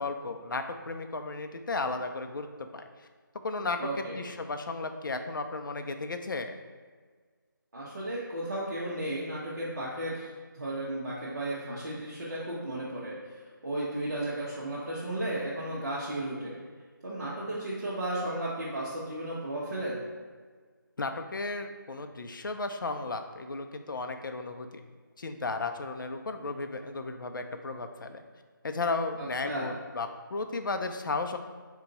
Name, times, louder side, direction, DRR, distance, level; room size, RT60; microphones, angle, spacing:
voice 1, 0.0-2.8 3.4-6.5 21.0-24.8 25.2-28.2 28.6-31.4, left 3 dB, 65° left, 6 dB, 0.4 m, -34 dB
voice 2, 3.8-4.2 7.7-16.5 17.0-20.0 29.2-29.7, right 1 dB, 55° right, -9 dB, 1.0 m, -34 dB
4.4 x 2.7 x 3.9 m, 1.5 s
figure-of-eight pair, 175°, 12 cm